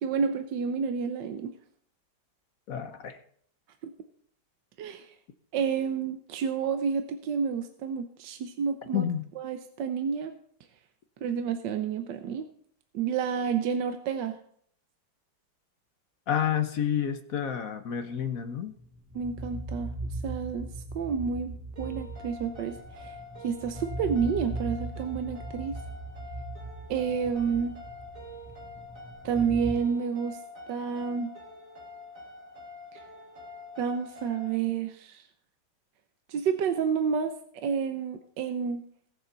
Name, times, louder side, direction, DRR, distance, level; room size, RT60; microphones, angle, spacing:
voice 1, 0.0-1.5 3.8-3.9 4.8-5.1 5.5-9.1 9.4-10.3 11.2-12.5 12.9-14.4 19.1-19.9 20.2-20.7 20.9-23.1 23.4-25.7 26.9-27.8 29.2-30.4 30.7-31.3 32.9-33.0 33.8-35.2 36.3-37.3 37.6-38.8, right 6 dB, 70° right, 7 dB, 1.4 m, -29 dB
voice 2, 2.7-3.2 8.9-9.3 16.3-18.7, left 9 dB, 55° left, 9 dB, 1.1 m, -29 dB
sound 1, 18.7-29.7, right 1 dB, 10° right, 2.4 m, -39 dB
sound 2, 21.8-34.6, left 2 dB, 45° right, 2.4 m, -46 dB
20.0 x 7.0 x 4.0 m, 0.63 s
omnidirectional pair, 2.1 m